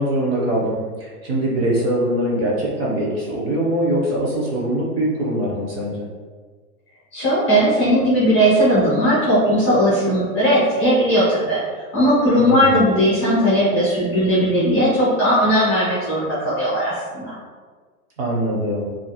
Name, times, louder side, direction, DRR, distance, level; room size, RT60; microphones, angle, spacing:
voice 1, 0.0-6.0 12.4-12.8 18.2-18.9, right 1 dB, 40° right, -4 dB, 0.5 m, -22 dB
voice 2, 7.1-11.6 11.9-17.4, equal, 20° left, -9 dB, 0.5 m, -17 dB
2.4 x 2.3 x 2.7 m, 1.5 s
supercardioid pair, 170°, 47 cm